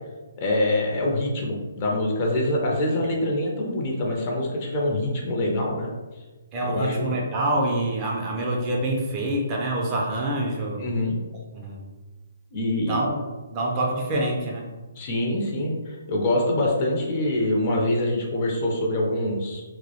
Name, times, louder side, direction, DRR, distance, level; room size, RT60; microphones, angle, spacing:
voice 1, 0.4-5.9 6.6-7.2 10.8-11.2 12.5-13.0 15.0-19.6, left 1 dB, 35° left, -1 dB, 0.5 m, -25 dB
voice 2, 6.5-10.8 11.5-11.8 12.8-13.2 13.5-14.7, right 1 dB, 25° right, -2 dB, 0.4 m, -26 dB
2.2 x 2.0 x 2.8 m, 1.2 s
figure-of-eight pair, 140°, 0 cm